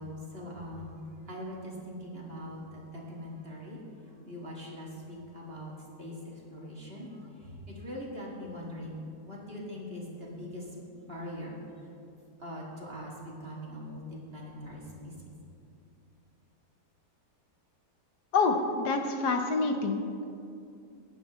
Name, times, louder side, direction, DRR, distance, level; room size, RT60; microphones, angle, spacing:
voice 1, 0.0-2.6 2.9-3.8 4.2-5.7 6.0-7.5 7.8-11.6 12.4-13.1 13.4-14.0 14.3-15.1, equal, 35° right, -4 dB, 2.1 m, -42 dB
voice 2, 18.3-20.0, left 4 dB, 70° left, 4 dB, 1.4 m, -27 dB
19.0 x 9.6 x 3.1 m, 2.5 s
omnidirectional pair, 1.9 m